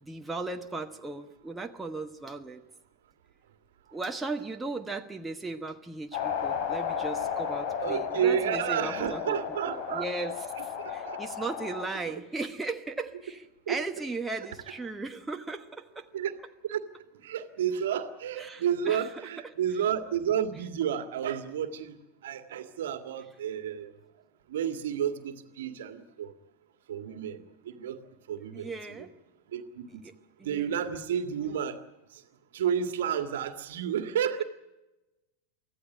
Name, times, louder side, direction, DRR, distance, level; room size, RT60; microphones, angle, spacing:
voice 1, 0.0-2.6 3.9-9.4 9.7-16.1 18.4-19.8 28.5-29.1 30.0-30.7, right 3 dB, 10° right, 4 dB, 1.2 m, -37 dB
sound 1, 6.1-11.8, left 8 dB, 50° left, 4.5 m, -33 dB
voice 2, 7.8-10.0 10.8-11.2 13.7-13.8 16.1-16.3 16.6-16.8 17.2-22.0 22.2-23.9 24.5-26.3 26.9-28.0 28.3-29.1 29.5-29.9 30.4-31.8 32.1-32.2 32.5-34.4, right 9 dB, 60° right, 9 dB, 1.9 m, -31 dB
24.5 x 15.5 x 9.8 m, 1.0 s
figure-of-eight pair, 90°, 0 cm